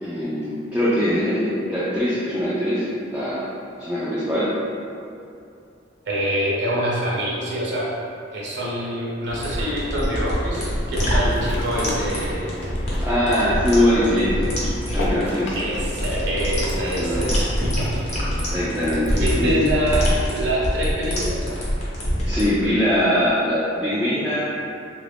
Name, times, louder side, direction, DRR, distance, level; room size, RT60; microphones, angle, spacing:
voice 1, 0.0-3.5 3.8-4.5 13.0-14.5 14.9-15.5 17.0-17.2 18.5-19.1 19.4-19.5 22.2-24.5, equal, 5° right, -11 dB, 0.4 m, -22 dB
voice 2, 6.1-7.9 8.3-12.9 15.5-17.9 19.1-21.4, equal, 60° right, -5 dB, 0.7 m, -25 dB
Ocean, 9.2-19.3, left 1 dB, 65° left, 0.5 m, -33 dB
sound 1, 9.4-22.4, equal, 35° left, 0.8 m, -25 dB
3.2 x 2.4 x 3.3 m, 2.6 s
head